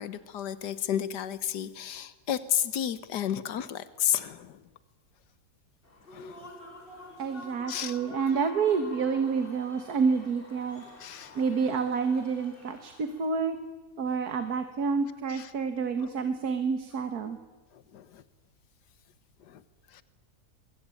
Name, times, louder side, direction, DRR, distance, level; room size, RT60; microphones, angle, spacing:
voice 1, 0.0-4.6 6.1-6.5 7.7-8.0 11.0-11.3 15.3-15.5 17.9-18.2 19.5-19.6 19.9-20.0, left 10 dB, 90° left, 14 dB, 1.6 m, -32 dB
Human voice / Cheering / Applause, 5.8-13.5, left 2 dB, 30° left, 4.4 m, -48 dB
voice 2, 7.2-10.8 11.4-13.6 14.0-17.4, right 5 dB, 65° right, 9 dB, 1.9 m, -28 dB
23.5 x 22.5 x 9.1 m, 1.2 s
omnidirectional pair, 1.7 m